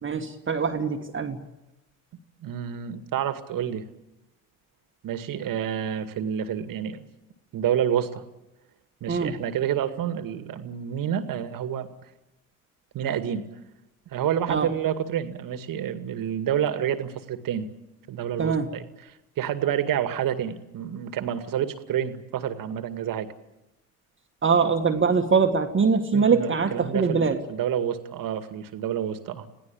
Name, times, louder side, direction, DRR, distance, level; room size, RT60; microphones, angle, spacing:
voice 1, 0.0-1.5 9.1-9.4 14.5-14.7 18.4-18.7 24.4-27.4, right 5 dB, 30° right, 5 dB, 1.9 m, -23 dB
voice 2, 2.4-3.8 5.0-7.1 7.5-8.2 9.0-11.9 12.9-13.5 14.1-17.7 18.1-18.9 19.4-23.3 26.1-27.2 27.5-29.5, right 9 dB, 50° right, 10 dB, 2.1 m, -28 dB
27.0 x 17.0 x 8.7 m, 0.97 s
hypercardioid pair, 60°, 43 cm